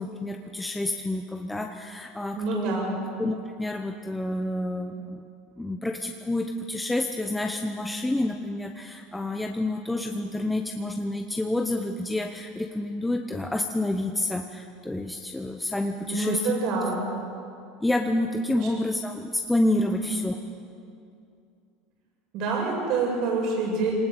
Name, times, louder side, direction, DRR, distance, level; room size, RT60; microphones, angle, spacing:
voice 1, 0.0-2.8 3.2-5.2 5.6-16.4 17.8-20.4, left 1 dB, 5° left, 4 dB, 0.9 m, -29 dB
voice 2, 2.3-3.0 16.1-17.1 18.5-18.7 19.9-20.0 22.3-24.0, right 4 dB, 55° right, -1 dB, 7.4 m, -27 dB
23.5 x 19.0 x 8.2 m, 2.5 s
supercardioid pair, 140°, 0 cm